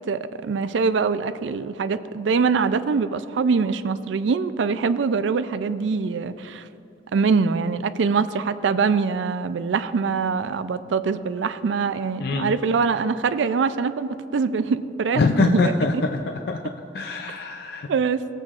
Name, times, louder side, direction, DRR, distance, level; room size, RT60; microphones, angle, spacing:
voice 1, 0.1-6.7 7.1-15.7 17.9-18.3, right 5 dB, 85° right, 13 dB, 0.4 m, -23 dB
voice 2, 12.2-12.6 15.2-16.2 16.5-16.6 16.9-17.9, left 3 dB, 60° left, 3 dB, 0.4 m, -23 dB
17.0 x 7.8 x 2.4 m, 2.8 s
head